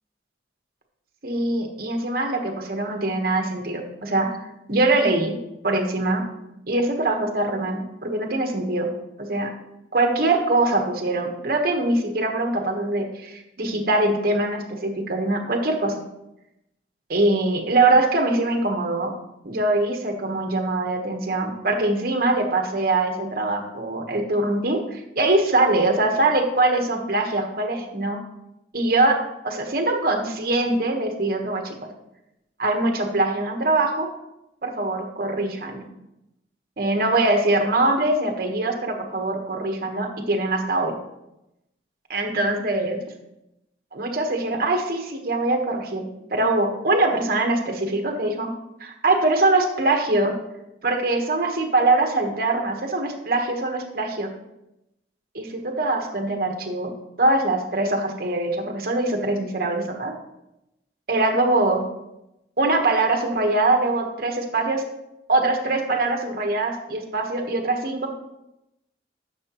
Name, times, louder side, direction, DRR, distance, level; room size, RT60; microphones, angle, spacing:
voice 1, 1.2-4.3 4.7-5.4 5.6-6.2 6.7-8.9 9.2-9.5 9.9-15.9 17.1-19.1 19.4-28.2 28.7-29.2 29.4-31.8 32.6-34.1 34.6-35.9 36.8-40.9 42.1-43.0 43.9-48.5 48.8-50.4 50.8-54.3 55.3-56.9 57.2-60.1 61.1-61.8 62.6-64.8 65.3-68.1, right 2 dB, 55° right, 3 dB, 1.2 m, -23 dB
10.5 x 6.6 x 3.0 m, 0.89 s
head